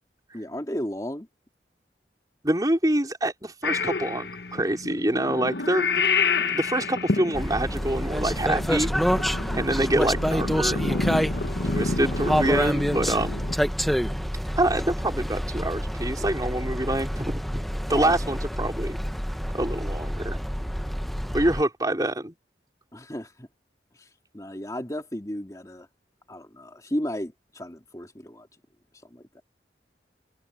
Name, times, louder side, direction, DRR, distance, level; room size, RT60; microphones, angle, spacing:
voice 1, 0.3-1.3 9.4-9.6 17.9-18.1 21.2-21.4 22.9-23.5 23.9-24.1 24.3-25.9 26.3-28.5 29.1-29.4, equal, 20° left, 3.1 m, -34 dB
voice 2, 2.4-6.0 6.5-8.9 9.5-11.0 11.7-13.4 14.6-17.6 17.9-19.0 19.5-20.4 21.3-22.3, right 1 dB, 20° right, 5.1 m, -26 dB
Purr / Meow, 3.6-13.6, left 4 dB, 65° left, 1.1 m, -29 dB
sound 1, 7.3-21.6, equal, ahead, 0.9 m, -28 dB
head